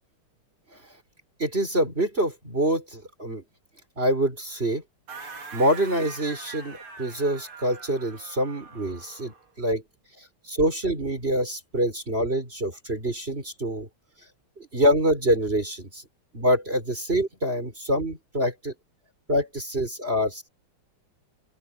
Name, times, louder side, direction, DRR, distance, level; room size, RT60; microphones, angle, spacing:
voice 1, 1.4-3.4 4.0-4.8 5.5-9.8 10.5-13.9 14.6-16.0 16.3-18.7 19.3-20.5, equal, 25° right, 4.9 m, -25 dB
sound 1, 5.1-9.5, right 5 dB, 75° right, 3.7 m, -43 dB
open air
omnidirectional pair, 2.4 m